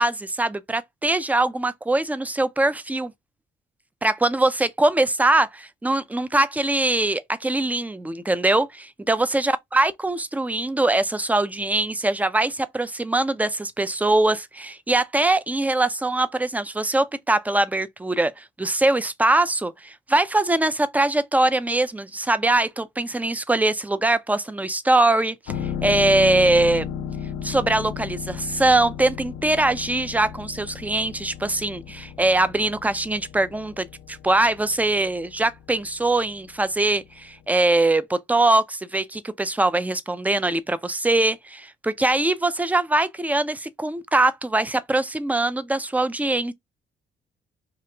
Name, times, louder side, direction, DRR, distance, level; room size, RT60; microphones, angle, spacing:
voice 1, 0.0-3.1 4.0-25.4 25.6-26.9 27.4-46.5, right 2 dB, 10° right, 0.4 m, -22 dB
sound 1, 25.5-37.0 37.3-37.4, left 8 dB, 85° left, 0.6 m, -34 dB
3.0 x 2.4 x 3.3 m
cardioid pair, 90°, 20 cm